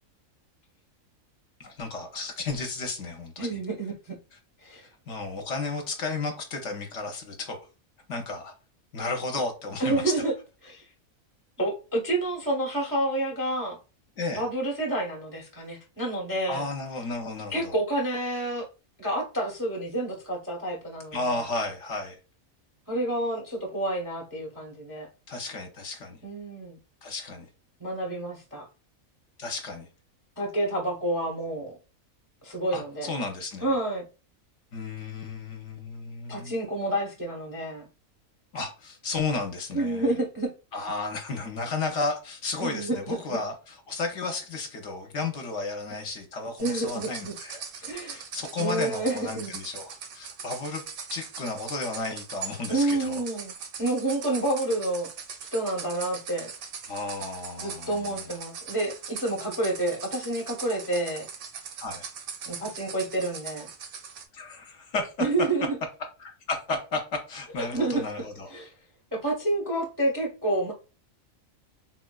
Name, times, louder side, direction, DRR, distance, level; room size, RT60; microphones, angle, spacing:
voice 1, 1.6-3.5 4.8-7.6 8.1-8.5 8.9-10.1 14.2-14.4 16.5-17.7 21.1-22.2 25.3-26.2 27.0-27.5 29.4-29.9 32.7-33.7 34.7-36.5 38.5-40.1 40.7-50.8 51.1-53.2 56.9-58.3 61.8-62.0 64.3-65.1 66.2-68.5, left 3 dB, 65° left, 0.9 m, -33 dB
voice 2, 3.4-4.2 4.6-4.9 9.8-10.3 10.6-10.9 11.6-13.8 14.3-16.6 17.5-18.7 19.0-21.4 22.9-25.1 26.2-26.8 27.8-28.7 30.4-31.7 32.4-33.1 33.6-34.1 36.3-37.8 39.7-40.5 42.6-43.4 46.6-47.3 47.8-48.2 48.6-49.5 52.7-53.5 53.8-55.1 55.5-56.5 57.6-61.3 62.4-63.7 65.2-65.8 67.6-68.0 68.5-68.7 69.1-70.7, right 1 dB, 25° right, 0.4 m, -29 dB
sound 1, 46.6-64.2, right 6 dB, 85° right, 1.1 m, -41 dB
3.8 x 2.2 x 2.2 m
omnidirectional pair, 1.5 m